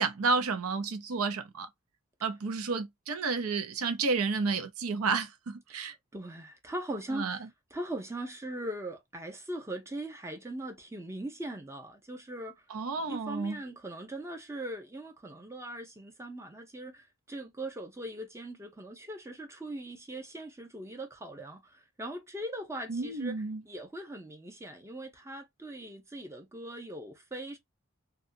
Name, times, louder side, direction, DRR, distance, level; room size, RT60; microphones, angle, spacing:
voice 1, 0.0-1.7 2.2-5.9 7.1-7.4 12.7-13.6 22.9-23.6, right 4 dB, 80° right, 0.6 m, -31 dB
voice 2, 6.1-7.5 7.7-12.5 13.1-27.6, right 1 dB, 15° right, 0.7 m, -40 dB
2.7 x 2.4 x 2.6 m
head